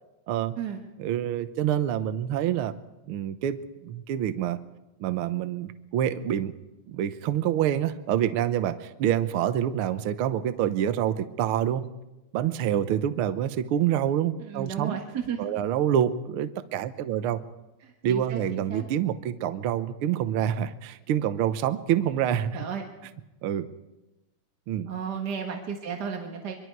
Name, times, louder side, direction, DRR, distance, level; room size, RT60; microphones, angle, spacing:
voice 1, 1.0-2.8 3.1-3.6 3.8-4.6 5.0-6.5 6.9-11.8 12.3-15.0 15.4-17.4 18.0-22.7 23.4-23.7 24.7-24.9, right 10 dB, 85° right, 11 dB, 1.2 m, -27 dB
voice 2, 14.4-15.5 17.8-18.9 22.5-22.8 24.9-26.5, right 7 dB, 45° right, 2 dB, 1.4 m, -33 dB
24.0 x 23.5 x 4.7 m, 0.99 s
omnidirectional pair, 3.6 m